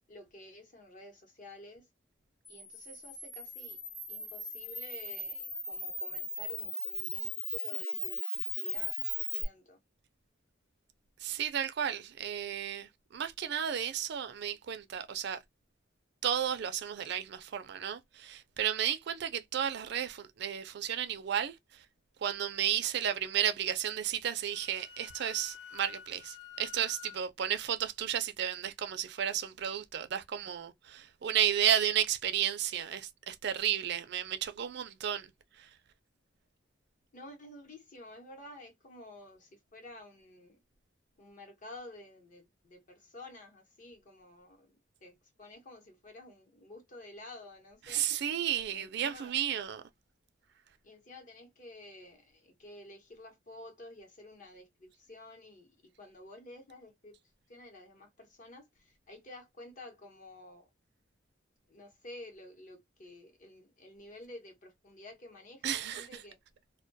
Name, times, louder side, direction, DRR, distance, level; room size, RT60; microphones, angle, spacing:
voice 1, 0.1-1.9 2.5-3.8 4.1-9.0 9.3-9.8 26.8-26.9 37.1-40.6 41.2-44.7 45.0-48.4 48.7-49.4 50.8-57.2 57.5-60.7 61.7-66.4, left 1 dB, 40° left, 0.8 m, -51 dB
Camera, 2.4-9.4, left 1 dB, 10° left, 0.6 m, -38 dB
voice 2, 11.2-15.4 16.2-21.6 22.2-35.3 35.6-35.7 47.9-49.8 65.6-66.1, right 9 dB, 60° right, 0.4 m, -33 dB
Wind instrument woodwind instrument, 24.3-27.2, left 9 dB, 60° left, 0.3 m, -50 dB
2.2 x 2.2 x 2.5 m
head